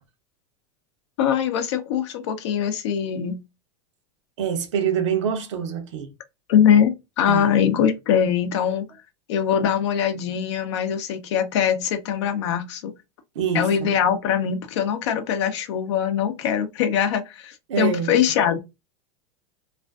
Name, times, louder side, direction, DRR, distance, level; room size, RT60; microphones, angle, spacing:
voice 1, 1.2-3.4 6.5-8.9 9.3-12.9 13.5-18.6, left 8 dB, 70° left, 0.6 m, -22 dB
voice 2, 4.4-6.1 7.3-7.5 13.4-13.9 17.7-18.1, right 8 dB, 80° right, 0.7 m, -25 dB
2.4 x 2.4 x 2.2 m
hypercardioid pair, 110°, 15 cm